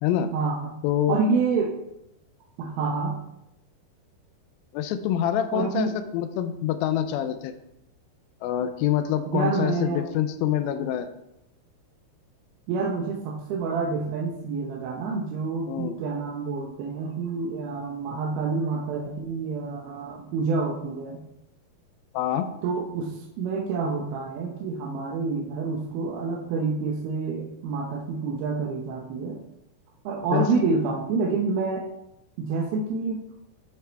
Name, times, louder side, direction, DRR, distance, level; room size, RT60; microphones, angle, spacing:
voice 1, 0.3-0.8 1.1-1.7 2.6-3.1 5.5-5.9 9.3-10.0 12.7-21.2 22.6-29.4 30.0-31.8 32.4-33.2, right 4 dB, 80° right, 0 dB, 2.5 m, -28 dB
voice 2, 0.8-1.2 4.7-7.5 8.4-11.1 15.7-16.0 22.1-22.5 30.3-30.6, left 11 dB, 80° left, 9 dB, 2.2 m, -26 dB
10.5 x 4.8 x 3.3 m, 0.85 s
omnidirectional pair, 4.6 m